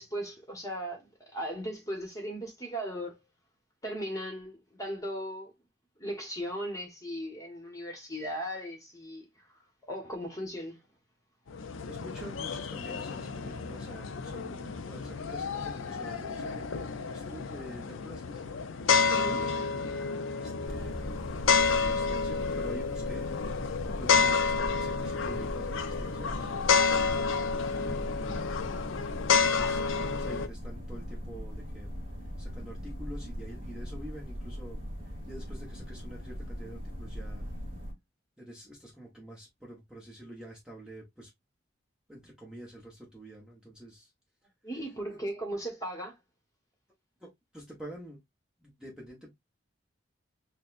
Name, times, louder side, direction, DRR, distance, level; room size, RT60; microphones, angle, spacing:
voice 1, 0.0-3.2 3.8-5.5 6.0-10.8 19.1-19.4 44.6-46.1, equal, 15° left, 1.2 m, -37 dB
sound 1, 11.5-30.5, left 5 dB, 85° left, 0.5 m, -30 dB
voice 2, 11.9-18.4 19.2-20.1 20.3-21.2 21.6-23.3 23.8-26.8 27.7-28.5 29.4-32.0 32.4-37.5 38.4-41.3 42.1-44.1 45.1-45.2 47.2-48.2 48.6-49.3, right 1 dB, 5° right, 1.0 m, -47 dB
sound 2, 20.6-37.9, equal, 30° right, 1.7 m, -40 dB
6.4 x 2.3 x 2.5 m
head